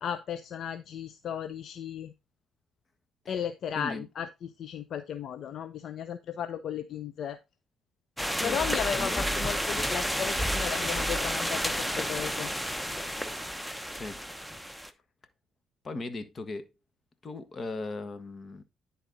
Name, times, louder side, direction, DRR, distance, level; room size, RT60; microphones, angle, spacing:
voice 1, 0.0-2.1 3.3-7.4 8.4-12.5, left 8 dB, 60° left, 0.5 m, -35 dB
voice 2, 3.7-4.1 8.3-8.6 8.9-9.2 13.9-14.2 15.8-16.7 17.2-18.6, left 3 dB, 40° left, 1.4 m, -38 dB
sound 1, 8.2-14.9, equal, 5° left, 0.8 m, -31 dB
10.5 x 4.1 x 3.9 m
supercardioid pair, 70°, 0 cm